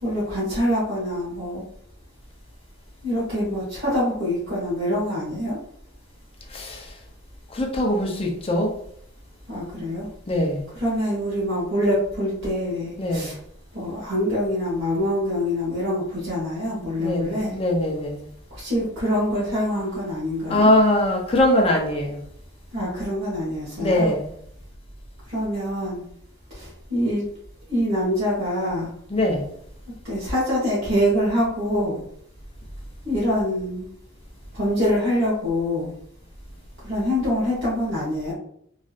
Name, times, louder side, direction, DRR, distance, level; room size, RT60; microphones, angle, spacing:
voice 1, 0.0-1.6 3.0-5.6 9.5-10.1 10.8-13.4 13.7-17.5 18.6-20.7 22.7-24.1 25.3-26.0 26.5-27.2 27.7-28.9 30.0-32.0 33.0-33.9 34.5-35.9 36.8-38.3, equal, 60° right, -7 dB, 1.2 m, -25 dB
voice 2, 6.5-6.9 7.5-8.7 10.3-10.6 13.0-13.3 17.0-18.3 20.5-22.2 23.8-24.3 29.1-29.5, left 1 dB, 30° left, 0 dB, 0.6 m, -22 dB
3.1 x 2.7 x 2.4 m, 0.67 s
head